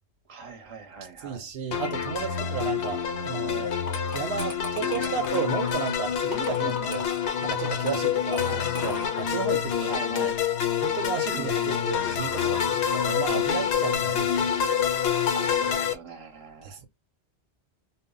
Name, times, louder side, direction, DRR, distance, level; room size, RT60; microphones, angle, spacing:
voice 1, 0.3-1.5 6.6-6.9 8.4-8.6 9.8-10.4 11.3-11.8 15.3-16.9, right 5 dB, 35° right, 0.6 m, -41 dB
voice 2, 1.2-3.7 4.1-7.0 7.4-10.3 10.8-14.6 16.6-16.9, right 7 dB, 75° right, 0.8 m, -33 dB
sound 1, 1.7-15.9, left 8 dB, 80° left, 0.8 m, -27 dB
sound 2, 3.7-9.3, left 3 dB, 30° left, 0.4 m, -41 dB
2.1 x 2.0 x 3.7 m
omnidirectional pair, 1.1 m